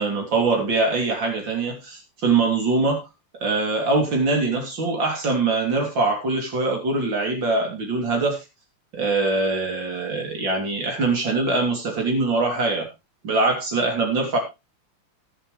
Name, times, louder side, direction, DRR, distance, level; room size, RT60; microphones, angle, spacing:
voice 1, 0.0-3.0 3.4-8.4 8.9-12.9 13.2-14.4, right 3 dB, 75° right, 1 dB, 4.0 m, -23 dB
19.5 x 7.6 x 3.4 m, 0.25 s
omnidirectional pair, 2.1 m